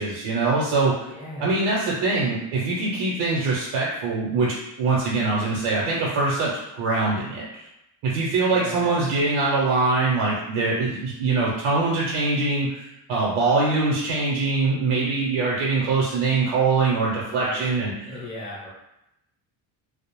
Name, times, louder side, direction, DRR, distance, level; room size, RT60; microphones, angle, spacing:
voice 1, 0.0-1.1 1.4-7.6 8.0-17.9, right 3 dB, 80° right, -4 dB, 0.7 m, -23 dB
voice 2, 1.0-1.5 8.5-9.0 17.3-18.7, equal, 10° left, -7 dB, 0.7 m, -36 dB
2.3 x 2.0 x 3.0 m, 0.87 s
supercardioid pair, 80°, 50 cm